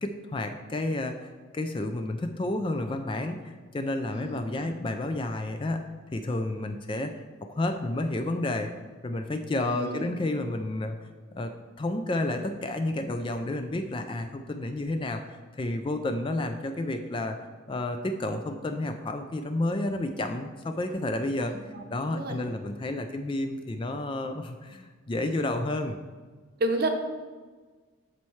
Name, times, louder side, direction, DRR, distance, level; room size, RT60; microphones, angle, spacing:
voice 1, 0.0-5.8 6.1-8.7 9.0-11.5 11.8-17.4 17.7-21.5 21.9-26.0, left 2 dB, 25° left, 7 dB, 0.3 m, -31 dB
voice 2, 4.1-4.7 9.6-10.1 21.4-21.8 22.1-22.5 26.6-26.9, right 2 dB, 45° right, 4 dB, 0.8 m, -31 dB
12.5 x 4.3 x 3.1 m, 1.4 s
head